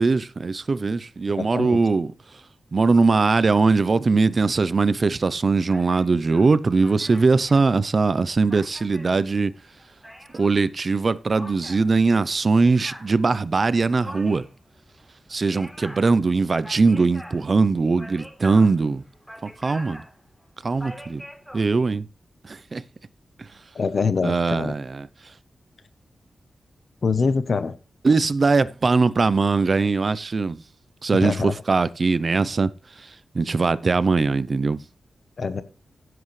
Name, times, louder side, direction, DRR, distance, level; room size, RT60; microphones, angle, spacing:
voice 1, 0.0-2.1 2.7-9.5 10.3-14.4 15.3-19.0 19.4-20.0 20.6-21.2 21.5-22.1 22.4-22.8 24.2-25.1 28.0-30.6 31.0-32.7 33.0-33.1 33.3-34.8, right 4 dB, 45° right, 0.6 m, -21 dB
voice 2, 1.4-1.8 23.7-24.7 27.0-27.7 31.2-31.5 35.4-35.6, left 5 dB, 55° left, 0.9 m, -24 dB
sound 1, 5.7-10.6 11.3-21.6, equal, 5° left, 3.4 m, -44 dB
15.5 x 7.8 x 3.3 m
wide cardioid pair, 105°, 0 cm